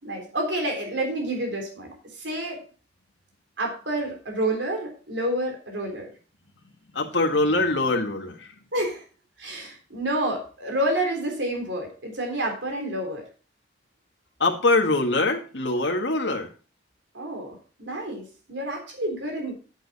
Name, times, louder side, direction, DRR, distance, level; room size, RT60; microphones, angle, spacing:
voice 1, 0.0-2.6 3.6-6.1 8.7-9.0 9.4-13.2 17.1-19.5, right 1 dB, 70° right, 3 dB, 3.5 m, -29 dB
voice 2, 6.9-8.5 14.4-16.5, left 2 dB, 70° left, 2 dB, 1.8 m, -23 dB
10.5 x 9.2 x 4.1 m, 0.37 s
head